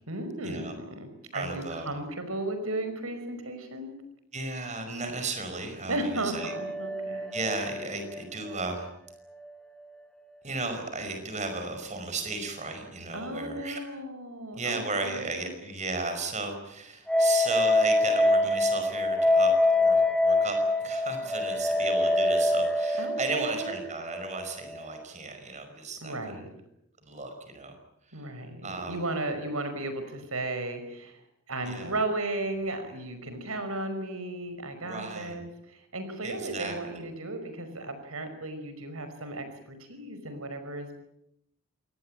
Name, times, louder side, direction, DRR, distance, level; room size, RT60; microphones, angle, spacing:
voice 1, 0.1-4.0 5.9-7.3 13.1-15.5 23.0-23.8 26.0-26.5 28.1-31.2 31.5-41.0, right 2 dB, 85° right, 8 dB, 5.4 m, -35 dB
voice 2, 1.3-1.9 4.3-6.5 7.3-8.9 10.4-13.8 14.5-26.3 27.1-27.8 28.1-28.3 28.6-29.0 31.6-31.9 34.8-35.4 36.2-37.0, right 3 dB, 35° right, 6 dB, 5.3 m, -35 dB
sound 1, 6.4-9.5 9.8-9.9 17.1-25.0, left 2 dB, 5° left, 1.3 m, -26 dB
27.0 x 19.5 x 8.9 m, 0.79 s
head